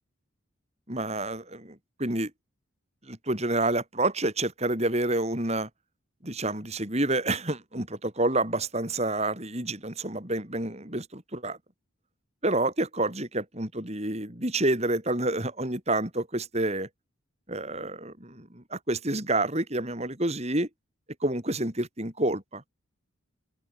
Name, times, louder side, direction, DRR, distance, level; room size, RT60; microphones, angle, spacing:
voice 1, 0.9-2.3 3.1-5.7 6.2-11.6 12.4-16.9 17.5-20.7 21.2-22.6, right 2 dB, 30° right, 5.1 m, -28 dB
open air
head